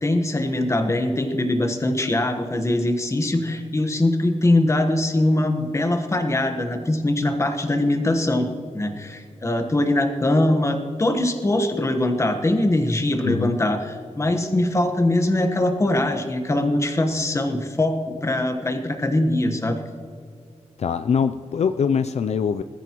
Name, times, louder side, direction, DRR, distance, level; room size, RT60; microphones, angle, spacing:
voice 1, 0.0-8.5 8.7-19.8, left 1 dB, 25° left, 6 dB, 1.2 m, -22 dB
voice 2, 13.2-13.6 20.8-22.6, left 6 dB, 65° left, 10 dB, 0.4 m, -23 dB
21.0 x 14.0 x 3.0 m, 2.2 s
wide cardioid pair, 170°, 12 cm